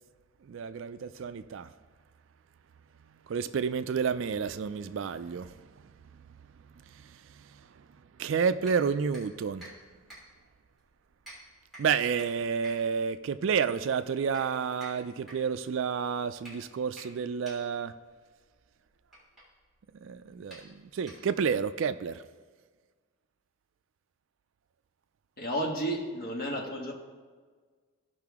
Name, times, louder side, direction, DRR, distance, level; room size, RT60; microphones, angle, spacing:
voice 1, 0.5-1.7 3.3-5.5 8.2-9.6 11.8-17.9 20.0-22.2, right 6 dB, 60° right, 12 dB, 0.3 m, -30 dB
sound 1, 8.6-21.6, right 1 dB, ahead, 3.1 m, -53 dB
voice 2, 25.4-26.9, right 1 dB, 45° left, 0 dB, 1.4 m, -32 dB
16.0 x 5.7 x 3.6 m, 1.5 s
head